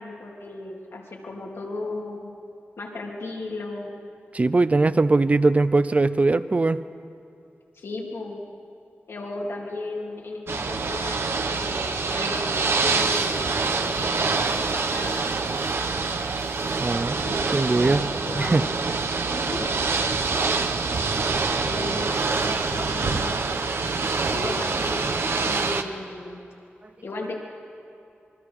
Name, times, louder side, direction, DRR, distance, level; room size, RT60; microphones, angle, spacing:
voice 1, 0.0-2.3 2.8-4.0 7.7-8.4 9.1-11.2 11.5-15.3 17.2-18.7 19.3-19.7 21.6-23.3 24.3-25.0 25.4-26.4 27.0-27.4, left 2 dB, 90° left, -2 dB, 3.1 m, -35 dB
voice 2, 4.3-6.8 16.8-17.2 17.5-18.0 18.4-18.6, right 3 dB, 35° right, 14 dB, 0.6 m, -20 dB
Ocean / Boat Water vehicle, 10.5-25.8, right 4 dB, 70° right, 1.1 m, -25 dB
26.5 x 22.0 x 4.9 m, 2.6 s
wide cardioid pair, 105°, 4 cm